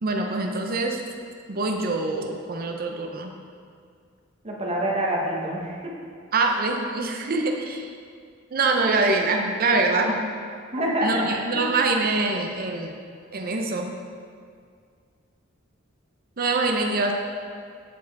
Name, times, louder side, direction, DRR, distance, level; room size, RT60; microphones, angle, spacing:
voice 1, 0.0-1.0 1.5-3.3 6.3-7.9 8.5-10.2 11.0-12.9 13.3-13.9 16.4-17.1, right 3 dB, 45° right, 3 dB, 0.6 m, -24 dB
voice 2, 4.4-5.9 10.7-11.3 11.5-11.6, right 1 dB, 30° right, -2 dB, 1.1 m, -26 dB
7.1 x 4.9 x 4.6 m, 2.2 s
head